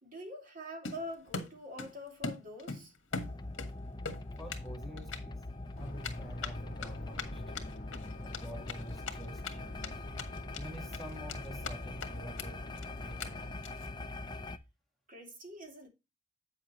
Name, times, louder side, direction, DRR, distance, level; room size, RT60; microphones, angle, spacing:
voice 1, 0.0-2.9 15.1-15.9, equal, 45° right, 2.7 m, -45 dB
Run, 0.8-1.9 2.2-3.7 4.0-4.7 5.0-5.2 6.0-9.5 9.8-9.9 10.2-10.6 10.9-11.7 12.0-12.1 12.4-12.5 12.8-12.9 13.2-13.3 13.6-13.9, left 4 dB, 75° left, 1.7 m, -40 dB
sound 1, 3.1-14.6, left 2 dB, 20° left, 0.6 m, -43 dB
voice 2, 4.4-5.5 5.8-7.7 8.2-10.0 10.5-12.6 13.0-13.6, right 1 dB, ahead, 1.8 m, -48 dB
sound 2, 5.8-13.5, left 1 dB, 45° left, 1.7 m, -48 dB
8.7 x 7.2 x 3.1 m
head